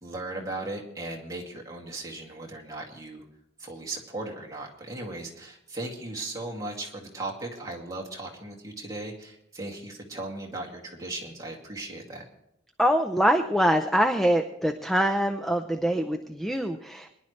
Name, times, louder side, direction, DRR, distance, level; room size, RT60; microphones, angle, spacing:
voice 1, 0.0-3.2 3.6-12.3, right 2 dB, 15° right, -2 dB, 2.3 m, -37 dB
voice 2, 12.8-17.1, equal, ahead, 6 dB, 0.5 m, -24 dB
22.5 x 11.0 x 3.2 m, 0.84 s
head